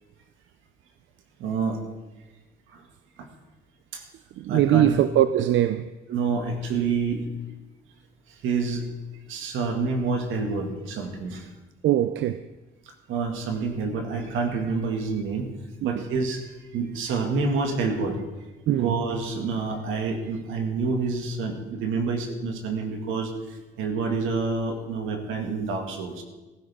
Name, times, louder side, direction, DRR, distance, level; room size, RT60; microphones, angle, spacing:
voice 1, 1.4-1.8 2.7-2.8 3.2-3.3 3.9-4.0 4.5-4.9 6.1-7.3 8.3-8.9 9.3-11.5 13.1-15.5 15.8-18.2 18.7-26.2, right 4 dB, 90° right, 2.0 m, -28 dB
voice 2, 4.4-5.9 11.8-12.5 15.8-16.0 18.7-18.9, right 12 dB, 70° right, 0.5 m, -22 dB
15.5 x 14.0 x 3.6 m
cardioid pair, 90°, 20 cm